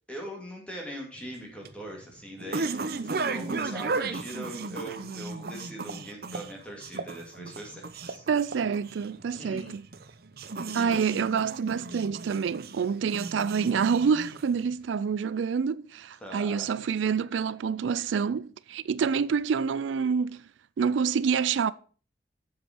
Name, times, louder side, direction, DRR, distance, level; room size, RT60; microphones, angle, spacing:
voice 1, 0.1-8.2 9.3-9.7 10.7-11.1 16.2-16.7, right 1 dB, 5° left, 2.5 m, -41 dB
sound 1, 1.2-14.7, right 3 dB, 55° right, 0.7 m, -35 dB
voice 2, 8.3-9.8 10.7-20.4 20.8-21.7, right 6 dB, 85° right, 0.4 m, -27 dB
7.6 x 7.3 x 5.3 m
head